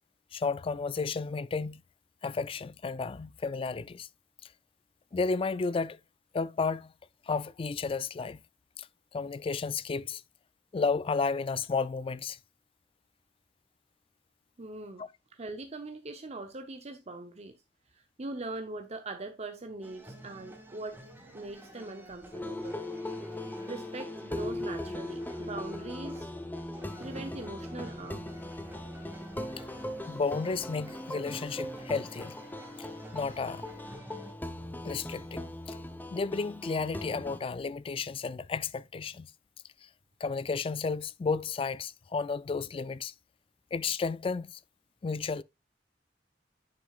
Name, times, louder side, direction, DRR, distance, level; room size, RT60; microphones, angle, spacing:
voice 1, 0.3-1.8 2.2-4.1 5.1-6.0 6.3-6.9 7.3-8.4 8.8-8.9 9.1-10.2 10.7-12.4 15.0-15.1 30.1-32.3 32.8-32.9 33.1-33.6 34.8-35.8 36.1-39.3 40.2-43.1 43.7-44.5 45.0-45.4, left 4 dB, 30° left, 0.3 m, -32 dB
voice 2, 14.6-17.5 17.9-21.0 21.3-22.8 23.7-26.3 27.0-28.3, right 2 dB, 35° right, 0.8 m, -41 dB
sound 1, 19.8-34.3, right 1 dB, 10° right, 1.7 m, -51 dB
sound 2, 22.3-37.4, left 1 dB, 10° left, 0.9 m, -39 dB
10.0 x 6.2 x 2.4 m
head